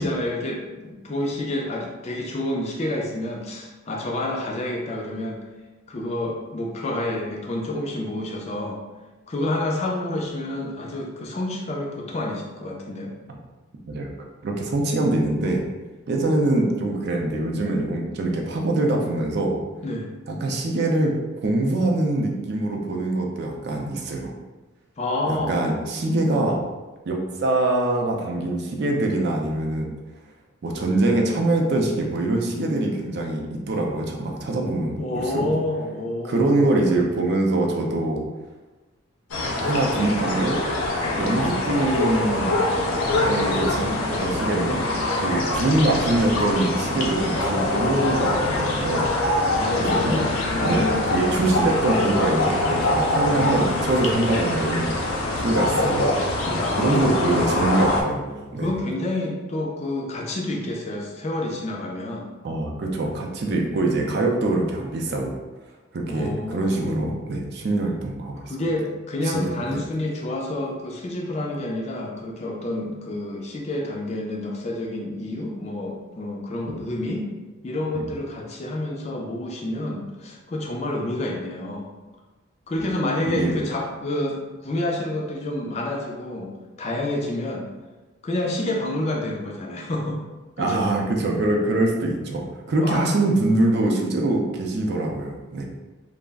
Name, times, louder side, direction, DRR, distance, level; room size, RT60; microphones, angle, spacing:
voice 1, 0.0-5.4 5.9-8.8 9.3-13.1 19.8-20.1 25.0-25.6 35.0-36.7 49.5-51.1 56.4-57.4 58.6-62.3 66.1-67.1 68.5-77.3 77.6-81.9 82.7-86.5 86.8-87.6 88.2-90.2 90.6-91.0 92.8-93.1, left 1 dB, 30° left, 0 dB, 0.3 m, -29 dB
voice 2, 14.4-15.6 16.1-19.6 20.3-21.1 21.4-24.3 25.3-26.6 27.1-29.9 30.6-35.0 35.4-35.5 36.2-38.2 39.6-40.6 41.1-42.5 43.2-44.8 45.2-49.1 49.8-50.2 50.6-54.9 55.4-56.2 56.7-58.7 62.4-65.3 65.9-68.5 69.2-69.4 69.7-69.8 77.9-78.0 83.3-83.5 90.6-95.6, right 2 dB, 50° right, 1 dB, 0.4 m, -24 dB
sound 1, 39.3-58.0, left 2 dB, 85° left, 0.5 m, -24 dB
2.3 x 2.0 x 3.4 m, 1.2 s
head